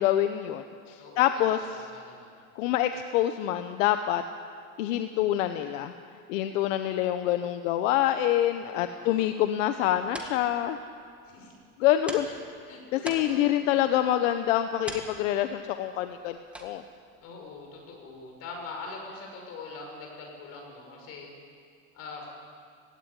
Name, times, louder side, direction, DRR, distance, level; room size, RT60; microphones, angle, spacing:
voice 1, 0.0-1.8 2.6-4.2 4.8-5.9 6.3-10.8 11.8-12.3 12.9-16.8, left 12 dB, 70° left, 8 dB, 1.1 m, -26 dB
voice 2, 1.0-2.4 8.8-9.2 11.3-11.5 12.2-12.4 12.7-13.7 17.2-21.3 21.9-22.3, left 3 dB, 35° left, 1 dB, 5.7 m, -43 dB
sound 1, 9.7-18.9, right 1 dB, 5° right, 1.7 m, -46 dB
17.0 x 16.5 x 10.0 m, 2.2 s
supercardioid pair, 165°, 40 cm